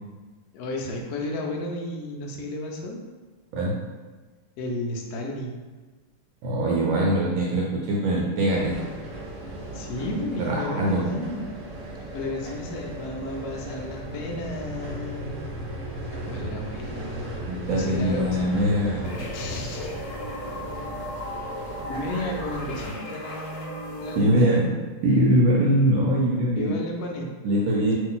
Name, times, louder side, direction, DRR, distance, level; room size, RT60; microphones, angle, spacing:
voice 1, 0.5-3.0 4.6-5.5 9.7-11.5 12.1-15.4 16.2-17.4 17.7-18.5 19.3-19.9 21.9-24.6 26.6-27.3, left 1 dB, 80° left, 1 dB, 0.8 m, -33 dB
voice 2, 6.4-8.8 10.4-11.1 17.5-19.2 24.2-24.7 25.0-26.8 27.4-28.0, right 1 dB, 75° right, -3 dB, 1.3 m, -22 dB
sound 1, 8.5-22.9, right 1 dB, 60° right, 0.8 m, -37 dB
sound 2, 19.0-24.2, left 1 dB, 60° left, 1.1 m, -36 dB
3.1 x 2.6 x 3.7 m, 1.3 s
omnidirectional pair, 2.2 m